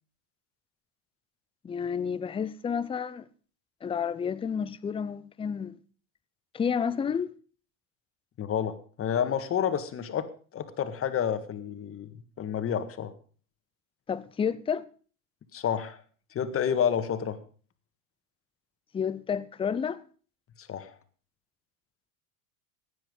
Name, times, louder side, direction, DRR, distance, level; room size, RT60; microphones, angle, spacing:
voice 1, 1.6-3.2 3.8-5.8 6.5-7.3 14.1-14.9 18.9-20.0, left 7 dB, 15° left, 0.6 m, -30 dB
voice 2, 8.4-13.1 15.5-16.0 16.3-17.4 20.6-20.9, left 8 dB, 30° left, 1.8 m, -30 dB
16.5 x 10.5 x 5.4 m
supercardioid pair, 110°, 42 cm